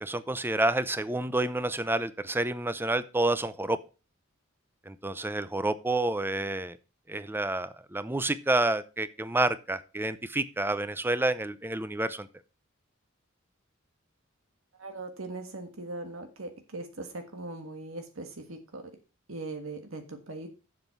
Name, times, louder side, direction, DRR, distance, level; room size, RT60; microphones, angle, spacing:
voice 1, 0.0-3.8 4.9-6.8 7.1-12.3, right 2 dB, 10° right, 15 dB, 0.6 m, -29 dB
voice 2, 14.8-18.9 19.3-20.5, right 2 dB, 75° right, 6 dB, 1.6 m, -40 dB
7.7 x 7.3 x 5.6 m, 0.32 s
head